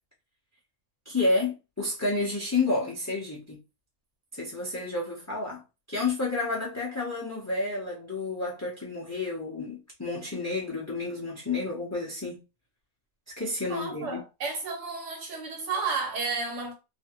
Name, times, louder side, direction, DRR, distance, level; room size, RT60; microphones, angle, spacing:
voice 1, 1.1-3.6 4.3-5.6 5.9-12.4 13.4-14.2, left 3 dB, 20° left, 0.5 m, -30 dB
voice 2, 13.6-16.7, right 4 dB, 55° right, 1.4 m, -32 dB
3.0 x 2.5 x 2.9 m
omnidirectional pair, 1.5 m